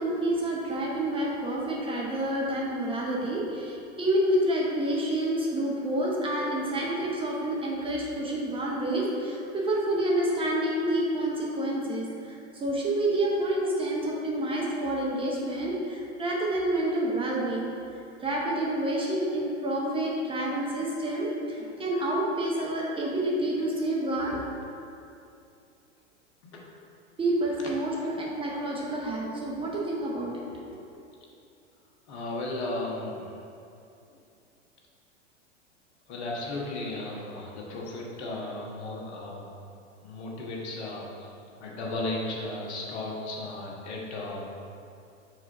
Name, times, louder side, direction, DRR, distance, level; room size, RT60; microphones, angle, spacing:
voice 1, 0.0-17.7 18.2-24.5 27.2-30.8, right 1 dB, 15° right, -4 dB, 0.8 m, -28 dB
voice 2, 32.1-33.4 34.1-34.2 36.1-39.4 40.0-41.3 41.6-44.5, left 2 dB, 60° left, -3 dB, 1.4 m, -35 dB
4.8 x 3.8 x 5.3 m, 2.6 s
figure-of-eight pair, 95°, 37 cm